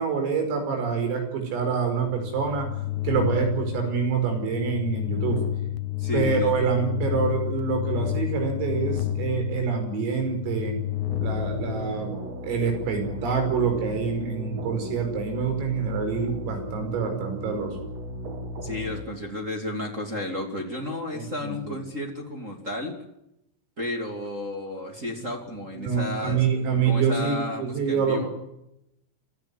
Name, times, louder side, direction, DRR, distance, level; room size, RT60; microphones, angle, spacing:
voice 1, 0.0-2.7 3.0-5.4 6.1-10.8 11.2-12.1 12.4-17.8 21.1-21.7 25.1-25.2 25.7-28.3, right 6 dB, 90° right, 5 dB, 8.0 m, -26 dB
sound 1, 1.9-12.5, left 13 dB, 75° left, 2.8 m, -31 dB
voice 2, 6.0-6.5 18.6-23.0 23.8-26.5 26.8-28.3, left 2 dB, 25° right, 1 dB, 2.0 m, -32 dB
sound 2, 11.1-19.0, right 1 dB, 45° right, 2.4 m, -36 dB
26.5 x 14.5 x 9.7 m, 0.83 s
omnidirectional pair, 5.8 m